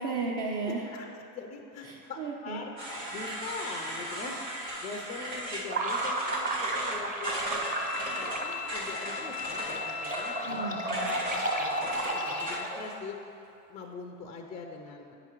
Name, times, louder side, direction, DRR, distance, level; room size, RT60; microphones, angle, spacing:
voice 1, 0.0-0.8 1.8-2.6 10.4-11.2, right 3 dB, 45° right, -2 dB, 0.8 m, -34 dB
voice 2, 0.6-10.6 11.6-13.2 13.7-15.1, left 4 dB, 15° left, 3 dB, 0.3 m, -43 dB
sound 1, 2.8-12.9, right 1 dB, 85° right, 1.5 m, -37 dB
sound 2, 5.7-12.9, right 2 dB, 15° right, 0.7 m, -33 dB
Bowed string instrument, 7.6-12.6, left 8 dB, 70° left, 0.5 m, -39 dB
8.8 x 5.9 x 2.9 m, 2.7 s
hypercardioid pair, 80°, 49 cm